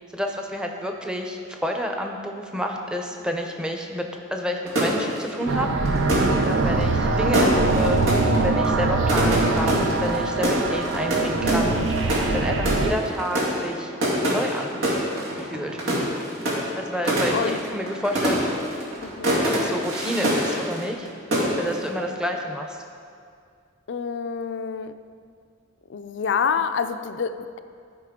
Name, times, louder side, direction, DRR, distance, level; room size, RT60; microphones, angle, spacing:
voice 1, 0.1-5.7 6.5-13.9 14.3-14.7 15.4-15.8 16.8-18.4 19.4-21.1 21.6-22.8, equal, 5° right, 2 dB, 0.6 m, -29 dB
sound 1, 4.7-21.1 21.3-21.9, equal, 90° right, 2.2 m, -25 dB
sound 2, 5.5-12.9, right 3 dB, 70° right, 0.5 m, -23 dB
voice 2, 17.3-17.6 19.0-19.4 23.9-24.9 25.9-27.6, left 6 dB, 60° left, 11 dB, 0.4 m, -27 dB
14.0 x 5.1 x 3.7 m, 2.2 s
head